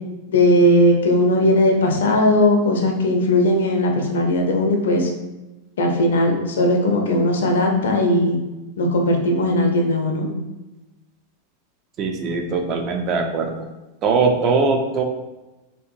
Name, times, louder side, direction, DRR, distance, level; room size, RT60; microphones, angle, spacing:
voice 1, 0.3-5.1 5.8-8.4 8.8-10.3, left 1 dB, 65° left, 2 dB, 0.4 m, -18 dB
voice 2, 12.0-13.6 14.0-15.0, right 4 dB, 35° right, 4 dB, 0.3 m, -21 dB
2.6 x 2.3 x 2.6 m, 1.1 s
figure-of-eight pair, 90°, 0 cm